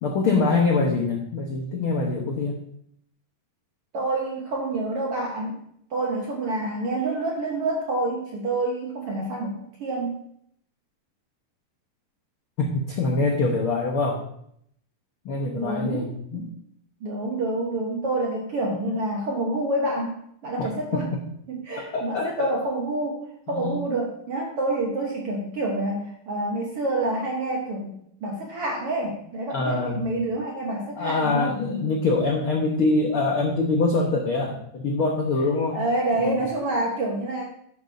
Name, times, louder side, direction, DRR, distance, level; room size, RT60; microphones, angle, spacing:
voice 1, 0.0-2.6 12.6-14.2 15.2-16.5 20.6-20.7 21.9-22.5 23.5-23.8 29.5-30.0 31.0-35.8 36.2-36.4, left 3 dB, 85° left, 0 dB, 1.2 m, -24 dB
voice 2, 3.9-5.6 5.9-10.1 15.6-16.1 16.3-16.5 17.0-20.1 20.4-21.1 21.5-23.2 23.5-31.5 35.7-37.4, right 2 dB, 60° right, -1 dB, 1.5 m, -27 dB
11.5 x 9.0 x 2.7 m, 0.69 s
omnidirectional pair, 4.1 m